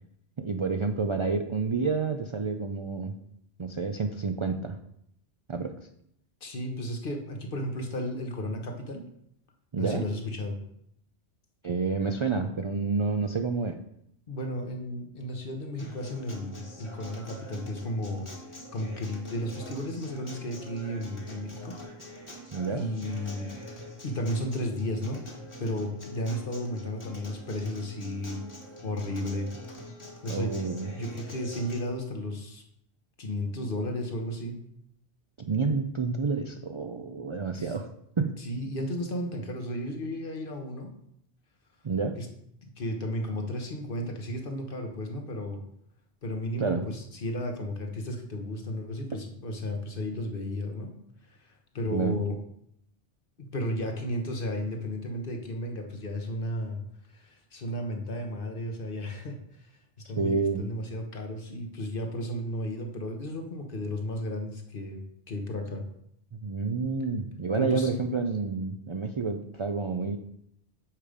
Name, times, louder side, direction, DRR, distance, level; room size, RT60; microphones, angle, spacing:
voice 1, 0.4-3.1 3.6-4.8 5.5-5.7 9.7-10.0 11.6-13.8 22.5-22.9 30.3-30.9 35.5-37.9 38.2-38.4 41.8-42.2 46.6-46.8 49.1-49.2 51.9-52.2 60.2-60.6 66.3-70.2, right 4 dB, 50° right, 6 dB, 0.3 m, -29 dB
voice 2, 6.4-9.0 9.8-10.6 14.3-21.8 22.3-23.5 24.0-28.4 28.8-29.5 30.2-30.6 30.9-32.6 33.2-34.6 37.6-37.7 38.4-40.9 42.2-42.3 42.6-45.6 46.2-50.9 51.2-52.4 53.4-56.8 57.1-59.7 60.1-65.0 65.3-65.8 67.5-67.9, left 1 dB, 55° left, 4 dB, 1.3 m, -34 dB
Acoustic guitar, 15.8-31.8, left 1 dB, 25° left, 1.4 m, -44 dB
7.4 x 4.9 x 5.1 m, 0.74 s
omnidirectional pair, 1.1 m